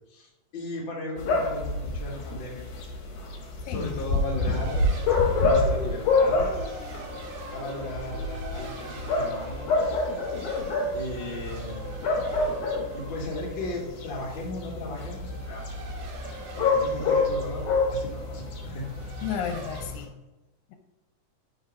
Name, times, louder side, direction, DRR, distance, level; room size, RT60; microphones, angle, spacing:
voice 1, 0.1-2.7 3.6-4.8 5.4-6.5 7.5-10.1 10.9-12.0 12.9-15.6 16.5-17.6 17.9-18.9, left 1 dB, 45° left, -3 dB, 1.7 m, -36 dB
sound 1, 1.2-20.0, left 3 dB, 65° left, 2.4 m, -28 dB
voice 2, 3.7-4.0 19.2-20.1, left 8 dB, 85° left, 5 dB, 2.3 m, -32 dB
Race car auto racing, 4.1-19.9, right 2 dB, 85° right, 2.8 m, -44 dB
5.6 x 3.7 x 5.2 m, 1.0 s
omnidirectional pair, 4.0 m